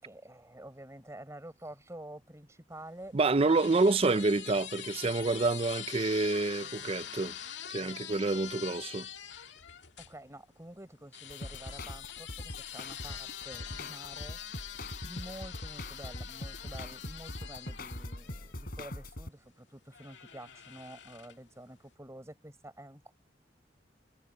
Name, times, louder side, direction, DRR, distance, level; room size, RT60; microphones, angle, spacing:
voice 1, 0.0-3.6 10.0-14.4 15.0-23.1, right 1 dB, 15° right, 4.5 m, -49 dB
sound 1, 2.8-10.1 11.1-19.0 19.9-21.5, left 10 dB, 85° left, 2.1 m, -44 dB
voice 2, 3.1-7.3 7.7-9.1, right 3 dB, 30° right, 0.5 m, -28 dB
sound 2, 11.3-19.3, left 1 dB, 55° left, 4.5 m, -43 dB
head